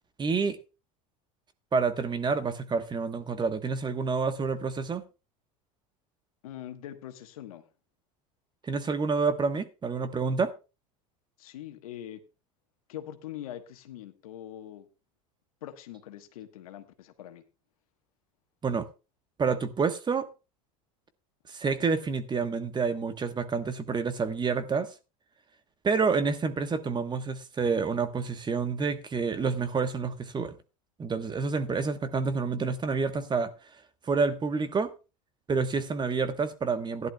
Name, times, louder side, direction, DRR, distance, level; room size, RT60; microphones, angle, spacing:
voice 1, 0.2-0.6 1.7-5.0 8.6-10.5 18.6-18.9 19.4-20.3 21.5-24.9 25.8-30.5 31.0-33.5 34.1-34.9 35.5-37.1, right 5 dB, 25° right, 1.2 m, -28 dB
voice 2, 6.4-7.6 11.4-12.2 12.9-14.9 15.6-17.4, left 11 dB, 85° left, 1.3 m, -43 dB
15.5 x 11.0 x 2.3 m
hypercardioid pair, 95°, 18 cm